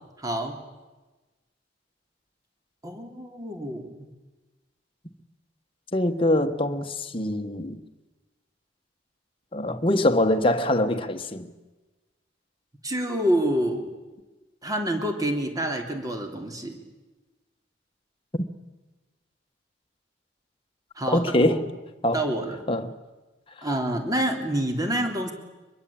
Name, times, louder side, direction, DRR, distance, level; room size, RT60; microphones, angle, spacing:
voice 1, 0.2-0.6 2.8-4.1 12.8-13.9 14.6-16.8 21.0-21.6 22.1-22.6 23.6-25.3, right 1 dB, 20° right, 3.5 m, -27 dB
voice 2, 5.9-7.8 9.5-11.5 18.3-18.4 21.1-21.6 22.0-22.2 22.7-22.9, left 1 dB, 30° left, 1.6 m, -23 dB
25.0 x 22.0 x 8.8 m
head